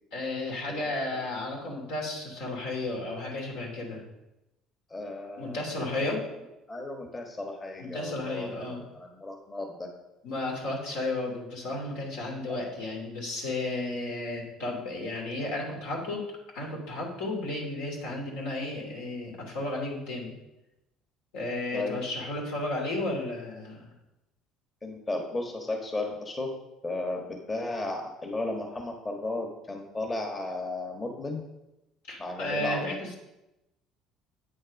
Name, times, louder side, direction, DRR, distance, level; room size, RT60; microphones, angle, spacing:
voice 1, 0.1-4.0 5.4-6.2 7.8-8.8 10.2-16.2 16.5-20.3 21.3-23.9 32.1-33.2, left 2 dB, 80° left, 0 dB, 2.8 m, -33 dB
voice 2, 0.7-1.2 4.9-5.6 5.9-6.0 6.7-9.9 12.5-12.6 21.7-22.0 24.8-26.5 26.8-31.4 32.2-32.9, left 2 dB, 25° left, 2 dB, 1.4 m, -34 dB
8.6 x 6.4 x 5.3 m, 0.95 s
supercardioid pair, 95°, 0 cm